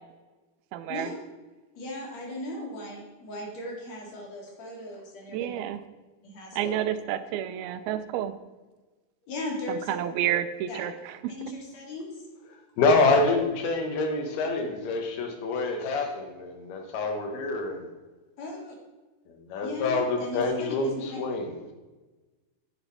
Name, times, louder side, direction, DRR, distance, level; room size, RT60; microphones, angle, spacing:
voice 1, 0.7-1.1 5.3-5.8 6.6-8.3 9.7-10.9, right 11 dB, 85° right, 11 dB, 2.5 m, -29 dB
voice 2, 1.8-5.6 6.2-6.8 9.3-9.9 10.7-10.9 11.4-12.1 18.4-18.7 19.6-21.2, left 1 dB, 50° left, -2 dB, 3.2 m, -37 dB
voice 3, 12.8-17.9 19.3-21.6, left 3 dB, 90° left, 4 dB, 3.3 m, -26 dB
10.0 x 8.1 x 4.2 m, 1.2 s
omnidirectional pair, 4.3 m